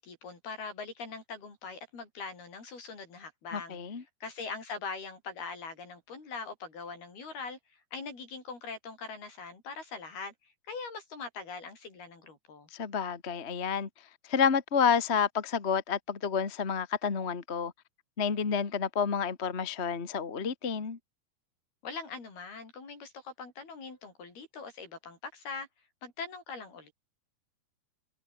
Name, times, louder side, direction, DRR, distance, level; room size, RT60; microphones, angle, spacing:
voice 1, 0.0-3.8 4.2-7.6 7.9-10.3 10.7-12.7 21.8-25.7 26.0-26.9, left 4 dB, 70° left, 8.8 m, -42 dB
voice 2, 3.5-4.0 12.7-13.9 14.2-17.7 18.2-21.0, left 6 dB, 40° left, 0.8 m, -29 dB
omnidirectional pair, 4.6 m